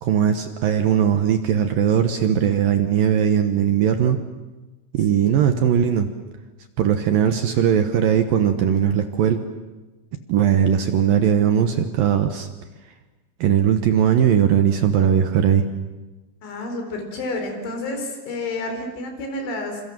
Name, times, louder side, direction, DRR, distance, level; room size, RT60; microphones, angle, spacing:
voice 1, 0.0-4.2 4.9-6.1 6.8-9.4 10.3-12.5 13.4-15.7, right 8 dB, 65° right, 8 dB, 2.4 m, -19 dB
voice 2, 16.4-19.8, left 2 dB, 80° left, 5 dB, 6.8 m, -30 dB
28.0 x 26.5 x 7.5 m, 1.1 s
omnidirectional pair, 5.3 m